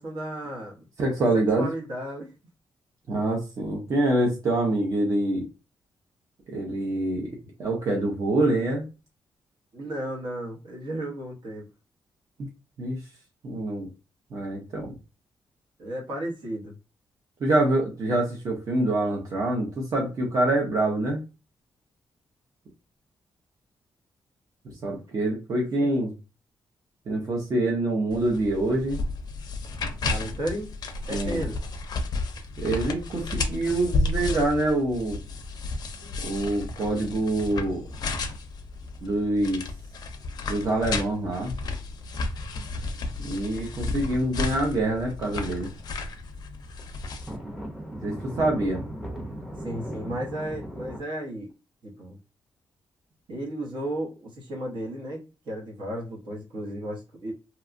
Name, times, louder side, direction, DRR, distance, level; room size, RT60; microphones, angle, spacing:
voice 1, 0.0-0.9 1.3-2.3 9.7-11.7 15.8-16.8 25.8-25.9 29.9-30.7 31.1-31.6 36.0-36.3 42.6-42.7 49.6-51.5 51.8-52.2 53.3-57.3, right 1 dB, 70° right, -1 dB, 1.0 m, -34 dB
voice 2, 1.0-1.7 3.1-5.5 6.5-7.3 7.6-8.9 12.4-12.5 12.8-13.0 13.4-13.9 14.3-14.9 17.4-21.2 24.8-26.1 27.1-29.0 31.1-31.5 32.6-35.2 36.2-37.8 39.0-39.6 40.5-41.6 43.2-45.7 48.0-48.8, right 2 dB, 45° right, -1 dB, 0.6 m, -25 dB
sound 1, 28.1-47.4, left 3 dB, 55° left, 0.4 m, -32 dB
sound 2, 33.9-34.1 34.4-34.5 34.8-34.9 35.5-35.9 36.3-36.4 37.0-37.8 38.3-38.4 38.9-40.9 41.3-41.6 42.2-42.3 42.8-42.9 43.1-44.7 45.0-45.1 45.5-45.6 45.8-45.9 46.2-46.3 46.7-51.0, equal, 5° right, 0.6 m, -38 dB
2.8 x 2.3 x 2.5 m, 0.30 s
wide cardioid pair, 170°, 8 cm